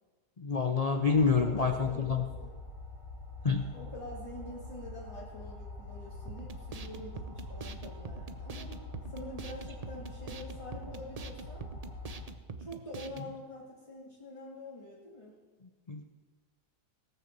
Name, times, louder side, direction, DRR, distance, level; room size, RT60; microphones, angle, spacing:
voice 1, 0.4-2.2 3.4-3.7 15.9-16.0, left 5 dB, 65° left, 5 dB, 0.3 m, -27 dB
sound 1, 1.1-12.3, left 2 dB, 45° left, 3.3 m, -45 dB
voice 2, 1.2-2.6 3.6-8.8 9.1-11.7 12.6-15.4, left 1 dB, 20° left, -6 dB, 2.2 m, -46 dB
sound 2, 6.3-13.3, right 4 dB, 75° right, 0.3 m, -44 dB
18.0 x 6.3 x 7.4 m, 1.3 s
omnidirectional pair, 1.8 m